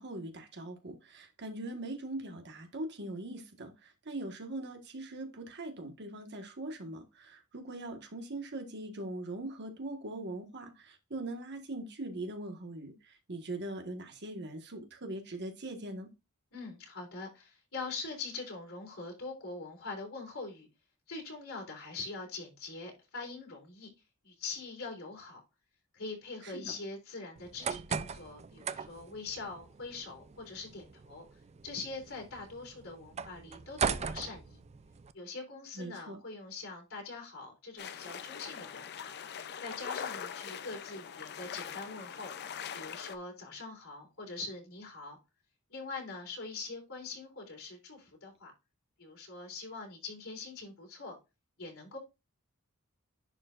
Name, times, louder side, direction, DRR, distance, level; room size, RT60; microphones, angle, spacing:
voice 1, 0.0-16.1 26.4-26.6 35.8-36.2, right 2 dB, 55° right, 1.5 m, -41 dB
voice 2, 16.5-20.7 21.1-23.9 24.2-25.4 25.9-31.2 31.6-34.6 35.1-39.1 39.6-42.3 42.7-45.2 45.7-48.5 49.0-51.2 51.6-52.0, left 3 dB, 70° left, 3.5 m, -43 dB
sound 1, 27.4-35.1, right 6 dB, 30° right, 0.4 m, -39 dB
sound 2, 37.8-43.2, left 8 dB, 50° left, 0.5 m, -42 dB
10.5 x 4.6 x 2.5 m
head